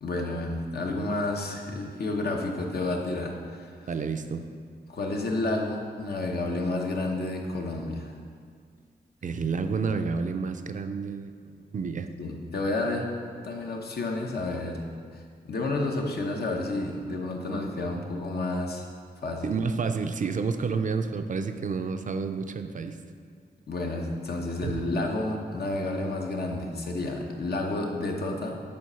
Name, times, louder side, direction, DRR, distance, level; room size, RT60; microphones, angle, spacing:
voice 1, 0.0-3.7 4.9-8.2 12.2-13.1 13.4-18.9 19.2-19.5 23.7-28.6, left 2 dB, 65° left, 1 dB, 0.9 m, -30 dB
voice 2, 3.9-4.5 9.2-12.1 19.4-23.0 24.6-24.8, right 5 dB, 50° right, 8 dB, 0.4 m, -30 dB
7.6 x 4.1 x 5.5 m, 2.1 s
wide cardioid pair, 110°, 17 cm